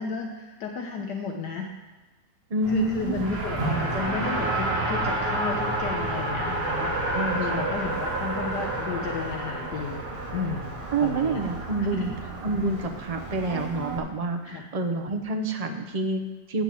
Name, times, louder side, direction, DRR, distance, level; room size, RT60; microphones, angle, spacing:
voice 1, 0.0-1.7 2.7-10.0 10.3-10.7 11.0-12.2 14.5-14.7, left 5 dB, 65° left, 2 dB, 1.4 m, -33 dB
voice 2, 2.5-3.4 7.1-7.6 10.9-12.1 12.4-16.6, right 3 dB, 70° right, 5 dB, 0.3 m, -28 dB
Race car auto racing, 2.6-14.0, right 2 dB, 35° right, 1.7 m, -30 dB
8.7 x 6.7 x 7.5 m, 1.2 s
omnidirectional pair, 2.0 m